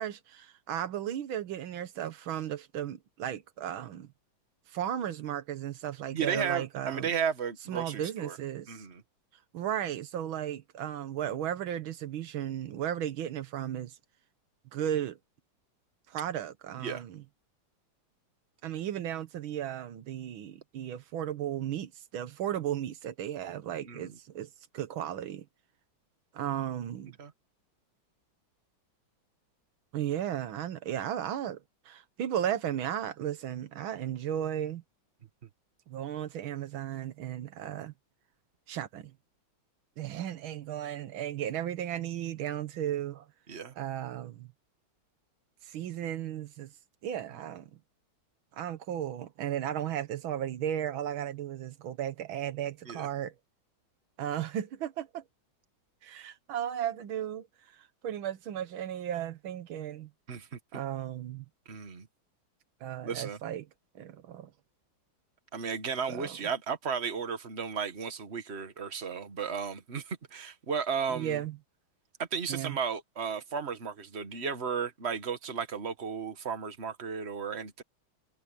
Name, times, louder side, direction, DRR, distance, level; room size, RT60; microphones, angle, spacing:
voice 1, 0.0-4.1 4.7-7.1 7.7-8.8 9.5-14.0 14.7-15.2 16.1-17.2 18.6-24.5 24.7-25.5 26.3-27.2 29.9-31.6 31.9-34.8 35.9-37.9 38.7-39.1 40.0-43.3 43.8-44.5 45.6-46.7 47.0-47.7 48.5-53.3 54.2-55.2 56.0-57.5 57.7-60.1 60.7-61.5 62.8-63.7 64.0-64.5 66.1-66.4 71.1-71.6 72.5-72.8, right 10 dB, 85° right, 1.8 m, -35 dB
voice 2, 6.1-8.4 8.7-9.0 16.8-17.0 23.9-24.1 27.2-27.3 43.5-43.7 52.9-53.1 60.3-60.8 61.7-62.1 63.0-63.4 65.5-71.4 72.2-77.8, right 6 dB, 35° right, 1.8 m, -34 dB
omnidirectional pair, 2.2 m